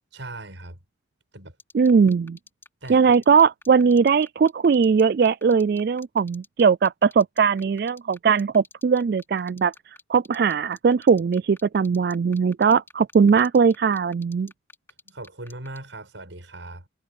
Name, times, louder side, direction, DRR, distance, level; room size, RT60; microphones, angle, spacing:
voice 1, 0.1-0.8 1.3-1.5 2.8-3.0 15.0-16.9, right 2 dB, 90° right, 6.7 m, -39 dB
sound 1, 1.6-15.8, left 3 dB, 10° left, 4.6 m, -48 dB
voice 2, 1.7-2.4 2.9-14.5, right 5 dB, 55° right, 0.3 m, -20 dB
head